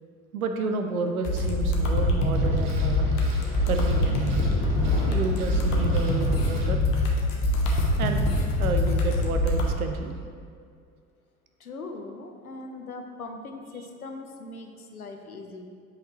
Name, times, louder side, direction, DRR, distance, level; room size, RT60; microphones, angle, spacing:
voice 1, 0.3-3.1 3.6-4.2 5.0-6.8 7.9-8.3 8.6-10.1, right 3 dB, 80° right, 5 dB, 0.6 m, -30 dB
sound 1, 1.2-9.7, left 1 dB, 50° left, 1.1 m, -24 dB
sound 2, 2.3-6.7, right 2 dB, 50° right, 1.1 m, -40 dB
voice 2, 11.6-15.6, left 3 dB, 90° left, 4 dB, 0.6 m, -40 dB
7.8 x 4.0 x 3.1 m, 2.1 s
figure-of-eight pair, 65°, 42 cm